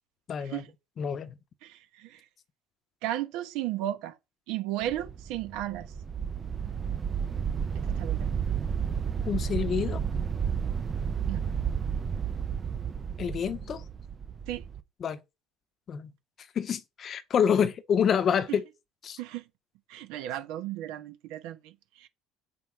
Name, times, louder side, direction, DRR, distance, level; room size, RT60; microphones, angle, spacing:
voice 1, 0.3-0.6 1.0-1.4 9.3-10.0 13.2-13.8 15.0-15.2 15.9-16.1 16.5-18.6 19.0-19.2, left 7 dB, 35° left, 0.8 m, -27 dB
voice 2, 1.6-2.2 3.0-4.1 4.5-5.9 7.7-8.3 11.3-11.4 14.5-14.6 18.5-18.6 19.2-19.4 19.9-21.7 22.0-22.1, right 13 dB, 80° right, 1.3 m, -34 dB
sound 1, 4.8-14.8, right 7 dB, 25° right, 0.6 m, -32 dB
8.3 x 5.6 x 4.6 m
cardioid pair, 160°, 0 cm